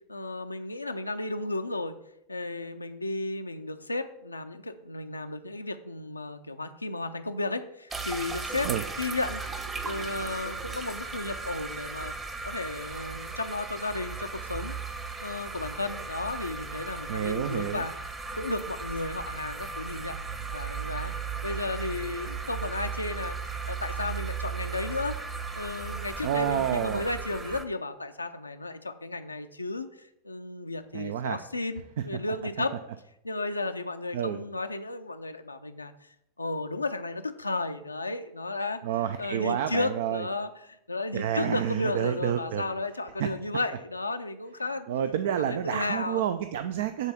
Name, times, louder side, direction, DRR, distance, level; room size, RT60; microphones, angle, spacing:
voice 1, 0.1-2.0 2.3-8.7 9.0-9.4 9.8-12.1 12.4-14.7 15.2-17.9 18.3-20.2 20.5-21.1 21.4-25.2 25.6-32.8 33.2-36.1 36.4-38.8 39.2-44.9 45.4-46.2, left 2 dB, 80° left, 7 dB, 0.5 m, -33 dB
sound 1, 7.9-27.6, right 4 dB, 15° right, 0.9 m, -36 dB
voice 2, 17.1-17.9 26.2-27.0 30.9-31.4 32.0-32.1 34.1-34.4 38.8-40.3 41.1-42.6 43.2-43.3 44.9-47.1, right 10 dB, 55° right, 10 dB, 0.4 m, -29 dB
8.1 x 4.0 x 7.0 m, 0.80 s
figure-of-eight pair, 90°, 0 cm